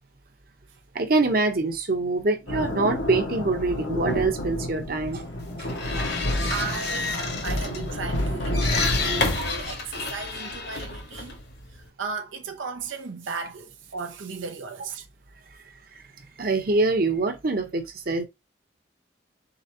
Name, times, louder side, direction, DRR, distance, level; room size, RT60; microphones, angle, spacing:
voice 1, 0.9-5.2 5.6-5.7 16.4-18.2, right 3 dB, 50° right, 0.9 m, -24 dB
sound 1, 2.5-9.3, left 1 dB, 80° left, 1.3 m, -29 dB
sound 2, 5.4-11.9, left 3 dB, 55° left, 1.3 m, -31 dB
voice 2, 6.2-11.4 11.7-15.1, right 5 dB, 90° right, 0.7 m, -35 dB
4.3 x 3.9 x 2.8 m
head